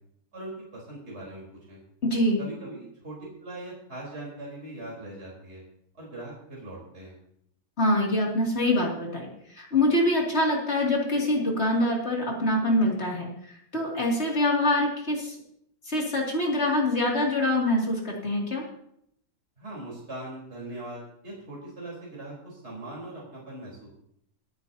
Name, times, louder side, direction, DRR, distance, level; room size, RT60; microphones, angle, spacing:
voice 1, 0.3-1.8 2.4-5.6 6.0-7.1 19.6-23.9, right 1 dB, 40° right, -4 dB, 4.3 m, -40 dB
voice 2, 2.0-2.4 7.8-9.3 9.5-13.3 13.7-15.3 15.9-18.6, left 1 dB, 40° left, -2 dB, 2.8 m, -24 dB
27.0 x 9.8 x 2.8 m, 0.73 s
omnidirectional pair, 1.8 m